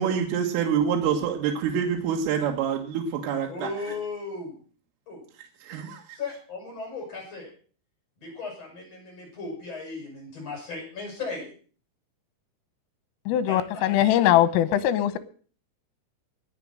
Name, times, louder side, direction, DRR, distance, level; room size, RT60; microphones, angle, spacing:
voice 1, 0.0-3.7 5.6-6.2, right 7 dB, 80° right, 4.1 m, -26 dB
voice 2, 3.5-4.5 5.1-5.2 6.1-7.5 8.2-11.5 13.5-13.8, left 3 dB, 30° left, 8.1 m, -36 dB
voice 3, 13.3-15.2, left 12 dB, 85° left, 3.6 m, -21 dB
20.0 x 7.0 x 7.6 m
omnidirectional pair, 5.9 m